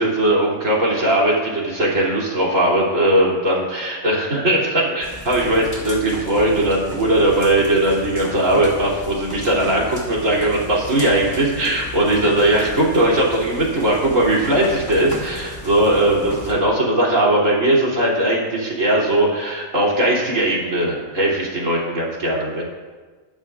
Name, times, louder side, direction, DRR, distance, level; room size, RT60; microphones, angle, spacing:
voice 1, 0.0-22.6, right 1 dB, 75° right, -4 dB, 3.5 m, -19 dB
sound 1, 5.0-16.5, left 1 dB, 15° left, 2.5 m, -35 dB
22.0 x 11.5 x 2.5 m, 1.4 s
omnidirectional pair, 1.4 m